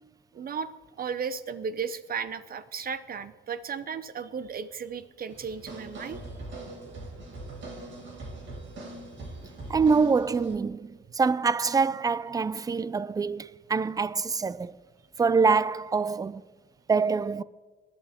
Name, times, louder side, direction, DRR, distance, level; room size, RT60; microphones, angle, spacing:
voice 1, 0.3-0.7 1.0-6.2, right 6 dB, 50° right, 0.7 m, -35 dB
sound 1, 5.3-10.6, right 2 dB, 65° right, 3.0 m, -41 dB
voice 2, 9.7-14.7 15.2-16.4 16.9-17.4, right 5 dB, 20° right, 0.4 m, -25 dB
20.0 x 11.5 x 3.6 m
cardioid pair, 90°, 20 cm